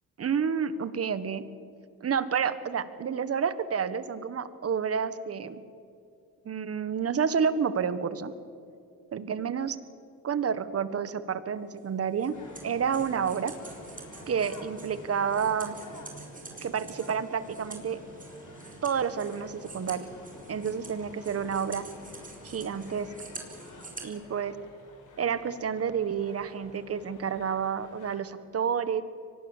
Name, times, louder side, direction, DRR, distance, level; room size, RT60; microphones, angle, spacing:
voice 1, 0.2-1.5 2.0-5.6 6.4-8.3 9.1-9.8 10.2-12.3 12.6-13.5 14.3-15.8 16.6-18.0 18.8-20.1 20.5-21.9 22.4-23.1 24.0-24.6 25.2-29.0, right 7 dB, 45° right, 14 dB, 1.5 m, -29 dB
sound 1, 11.7-24.1, right 3 dB, 25° right, 4.4 m, -46 dB
sound 2, 12.3-28.2, left 3 dB, 65° left, 5.5 m, -51 dB
24.0 x 19.0 x 7.4 m, 2.5 s
cardioid pair, 95°, 32 cm